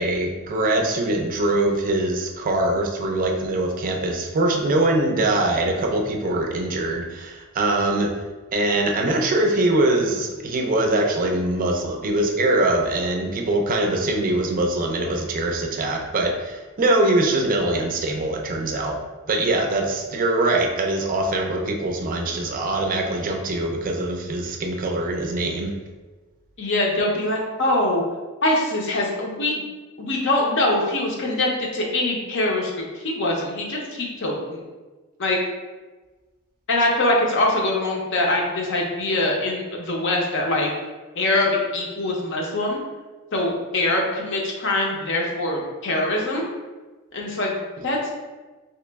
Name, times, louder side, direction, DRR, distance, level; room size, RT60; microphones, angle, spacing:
voice 1, 0.0-8.1 8.5-19.0 19.3-25.7, right 2 dB, 40° right, 2 dB, 0.4 m, -23 dB
voice 2, 26.6-28.0 28.4-29.6 30.0-34.6 35.2-35.4 36.7-40.7 41.1-42.8 43.3-46.5 47.1-48.1, left 1 dB, 55° left, -1 dB, 0.7 m, -23 dB
3.0 x 2.9 x 3.4 m, 1.3 s
head